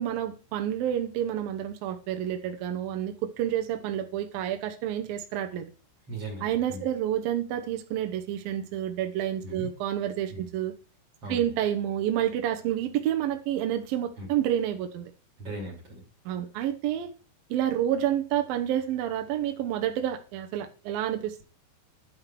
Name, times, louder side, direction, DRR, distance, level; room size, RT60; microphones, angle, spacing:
voice 1, 0.0-5.7 6.4-10.7 11.3-15.1 16.3-17.1 17.5-21.4, right 11 dB, 80° right, 5 dB, 2.1 m, -29 dB
voice 2, 6.1-6.8 9.4-9.7 10.3-10.4 11.2-11.5 14.2-14.3 15.4-16.0, right 1 dB, 35° right, 0 dB, 3.3 m, -38 dB
10.5 x 5.7 x 5.8 m, 0.35 s
omnidirectional pair, 5.6 m